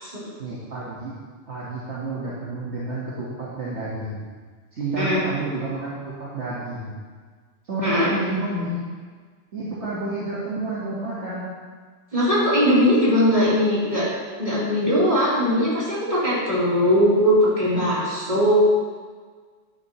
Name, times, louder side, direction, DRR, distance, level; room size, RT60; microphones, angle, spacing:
voice 1, 0.4-1.1 1.5-4.2 4.7-7.0 7.6-8.8 9.5-11.5, right 2 dB, 60° right, -8 dB, 1.9 m, -30 dB
voice 2, 12.1-14.1 14.4-18.5, equal, 35° right, -9 dB, 3.7 m, -20 dB
11.5 x 10.0 x 3.1 m, 1.5 s
omnidirectional pair, 1.3 m